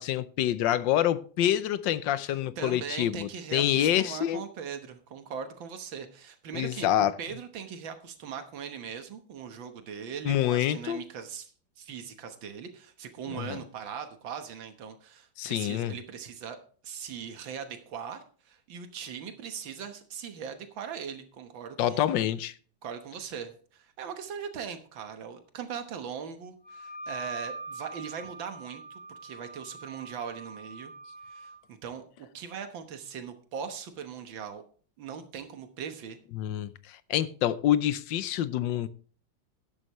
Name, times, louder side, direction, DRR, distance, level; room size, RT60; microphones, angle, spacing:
voice 1, 0.0-4.4 6.5-7.1 10.2-11.0 13.3-13.6 15.4-15.9 21.8-22.5 36.3-38.9, left 12 dB, 75° left, 1.4 m, -27 dB
voice 2, 2.3-11.5 11.8-16.6 16.8-22.1 22.8-30.9 31.3-34.6 35.0-36.2, right 7 dB, 85° right, 2.0 m, -40 dB
Wind instrument woodwind instrument, 26.6-31.6, right 2 dB, 50° right, 4.6 m, -43 dB
12.0 x 11.0 x 3.1 m
omnidirectional pair, 2.0 m